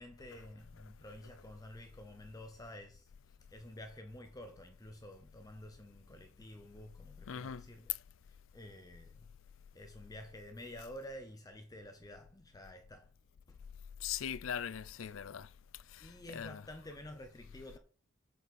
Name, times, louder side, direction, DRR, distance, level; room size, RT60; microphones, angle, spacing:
voice 1, 0.0-7.9 8.5-9.3 9.7-13.1 13.5-13.6 14.4-14.6 16.0-17.8, left 1 dB, 15° left, 0.9 m, -50 dB
voice 2, 7.3-7.6 14.0-15.5 15.9-16.6, left 8 dB, 65° left, 0.4 m, -40 dB
8.2 x 7.3 x 4.3 m
head